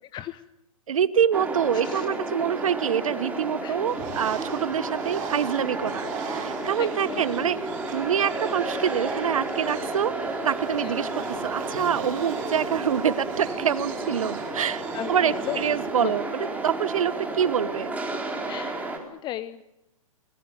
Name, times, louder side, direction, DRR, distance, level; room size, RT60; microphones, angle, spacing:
voice 1, 0.1-0.4 1.8-2.1 3.6-3.8 6.8-7.3 10.8-11.0 14.9-15.6 16.0-16.1 18.5-19.6, left 13 dB, 25° left, 14 dB, 0.8 m, -36 dB
voice 2, 0.9-7.6 7.9-14.8 15.1-17.9, right 8 dB, 70° right, 19 dB, 1.2 m, -26 dB
sound 1, 1.3-19.0, right 2 dB, 10° right, 4.2 m, -32 dB
Bird, 3.9-15.9, right 7 dB, 35° right, 6.6 m, -43 dB
24.0 x 19.5 x 9.5 m, 0.87 s
figure-of-eight pair, 120°, 18 cm